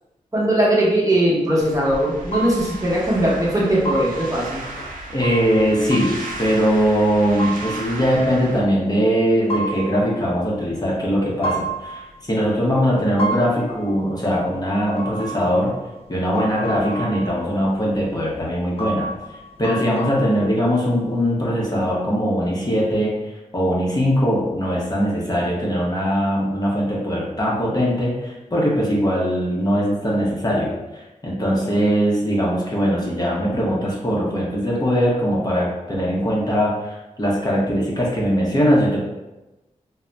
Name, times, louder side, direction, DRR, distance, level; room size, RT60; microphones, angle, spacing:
voice 1, 0.3-4.6, right 1 dB, 25° right, -5 dB, 0.9 m, -19 dB
sound 1, 1.6-8.6, right 2 dB, 90° right, 0.4 m, -35 dB
sound 2, 2.3-3.0 3.4-3.5 3.8-7.0 7.4-8.8 9.3-10.8 11.4-12.4 12.9-17.5 17.8-17.9 18.3-18.4 18.8-21.2, right 2 dB, 45° left, 0.4 m, -32 dB
voice 2, 5.1-15.7 16.1-23.1 23.5-39.0, equal, 30° left, -5 dB, 0.8 m, -21 dB
2.5 x 2.1 x 3.2 m, 1.0 s
cardioid pair, 50°, 14 cm